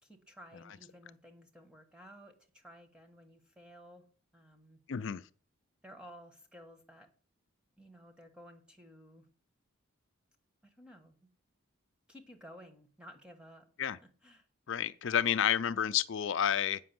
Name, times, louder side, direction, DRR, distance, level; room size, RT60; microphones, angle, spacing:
voice 1, 0.0-4.1 4.3-4.8 5.8-7.1 7.8-9.3 10.6-11.2 12.1-13.7 14.0-14.5, equal, 5° right, 1.3 m, -54 dB
voice 2, 4.9-5.2 13.8-14.0 14.7-16.8, left 9 dB, 60° left, 0.4 m, -30 dB
8.5 x 6.1 x 7.6 m
head